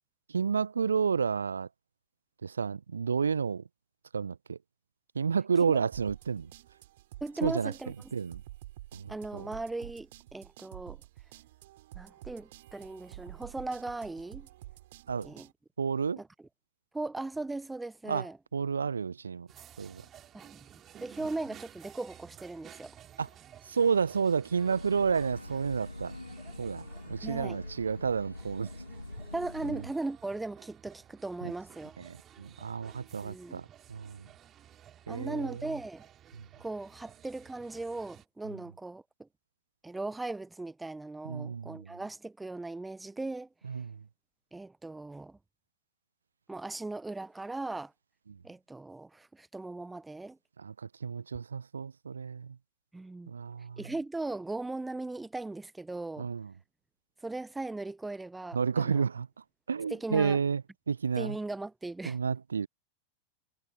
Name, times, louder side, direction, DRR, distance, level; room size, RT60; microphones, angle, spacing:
voice 1, 0.3-1.7 2.4-3.6 4.1-4.6 5.1-6.5 7.4-7.7 8.1-8.4 8.9-9.5 15.1-15.3 15.8-16.2 18.1-18.3 18.5-19.5 19.8-20.0 23.2-23.3 23.7-26.1 26.6-28.7 29.7-29.8 31.4-31.5 32.0-34.2 35.1-35.6 38.5-38.6 41.2-41.9 43.6-44.0 50.6-52.6 53.3-53.8 56.2-56.5 58.5-59.3 59.7-60.6 60.9-61.4 62.0-62.7, right 6 dB, 70° right, 1.1 m, -31 dB
sound 1, 5.9-15.5, right 16 dB, 55° right, 4.9 m, -50 dB
voice 2, 7.2-7.9 9.1-11.0 11.9-14.5 15.2-15.5 16.2-16.3 16.9-18.4 20.3-20.6 21.0-23.0 27.2-27.6 29.3-31.9 33.2-33.6 35.1-36.1 36.6-39.3 39.8-43.5 44.5-45.4 46.5-47.9 48.4-50.4 52.9-53.3 53.8-56.3 57.2-59.0 59.9-60.4 61.2-62.2, right 2 dB, 10° right, 1.1 m, -38 dB
sound 2, 19.5-38.2, right 10 dB, 30° right, 3.8 m, -54 dB
Breathing / Train, 24.5-30.0, left 2 dB, 85° left, 3.3 m, -44 dB
figure-of-eight pair, 90°, 0 cm